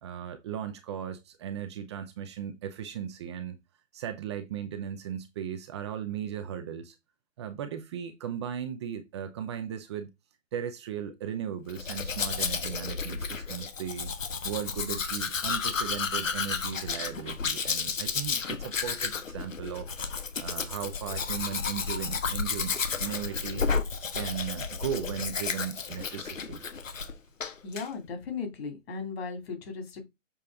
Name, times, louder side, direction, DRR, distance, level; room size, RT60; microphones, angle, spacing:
voice 1, 0.0-3.6 3.9-7.0 7.4-10.1 10.5-14.1 14.4-19.9 20.4-22.7 23.0-26.6, right 9 dB, 20° right, 0.5 m, -37 dB
Domestic sounds home sounds, 11.7-27.1 27.4-27.9, left 5 dB, 80° left, 1.2 m, -32 dB
voice 2, 27.6-30.1, left 5 dB, 50° left, 2.5 m, -37 dB
6.9 x 4.2 x 3.5 m
figure-of-eight pair, 130°, 38 cm